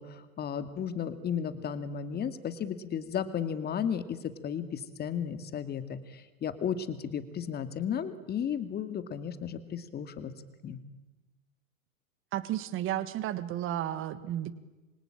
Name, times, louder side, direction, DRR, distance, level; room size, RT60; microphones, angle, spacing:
voice 1, 0.0-10.3 10.6-10.8, left 8 dB, 20° left, 11 dB, 2.3 m, -34 dB
voice 2, 12.3-14.5, right 12 dB, 30° right, 15 dB, 1.7 m, -33 dB
27.5 x 24.5 x 8.8 m, 1.1 s
hypercardioid pair, 125°, 44 cm